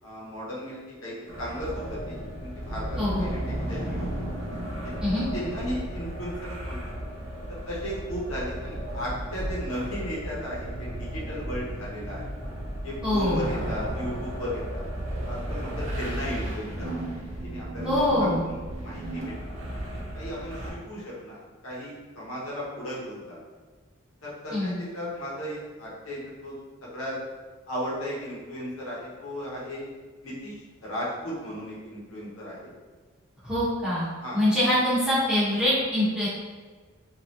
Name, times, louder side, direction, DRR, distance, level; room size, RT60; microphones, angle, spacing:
voice 1, 0.0-3.4 3.7-4.3 4.8-5.0 5.3-7.0 7.6-12.2 12.8-14.9 15.3-17.1 17.4-19.6 20.1-23.4 24.2-26.5 26.8-27.2 27.7-29.9 30.2-30.5 30.8-32.7 34.2-34.4, equal, 90° left, -6 dB, 0.9 m, -35 dB
sound 1, 1.3-20.7, right 1 dB, 70° right, 0.7 m, -34 dB
voice 2, 3.0-3.3 5.0-5.2 13.0-13.5 17.8-18.5 24.5-24.7 33.4-34.1 34.3-36.3, left 1 dB, 5° right, -12 dB, 0.8 m, -24 dB
3.2 x 2.5 x 2.6 m, 1.4 s
head